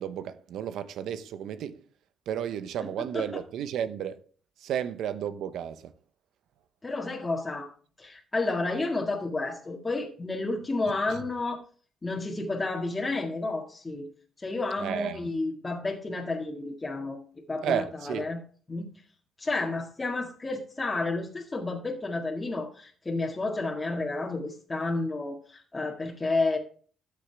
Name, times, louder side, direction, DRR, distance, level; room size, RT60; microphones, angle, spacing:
voice 1, 0.0-1.8 2.3-4.2 4.6-5.9 10.9-11.2 14.8-15.3 17.6-18.3, right 9 dB, 80° right, 0.8 m, -33 dB
voice 2, 6.8-7.7 8.0-11.6 12.0-14.1 14.4-17.2 17.5-18.4 18.7-18.9 19.4-26.6, left 3 dB, 25° left, 1.9 m, -31 dB
13.0 x 6.8 x 3.4 m
cardioid pair, 90°, 0 cm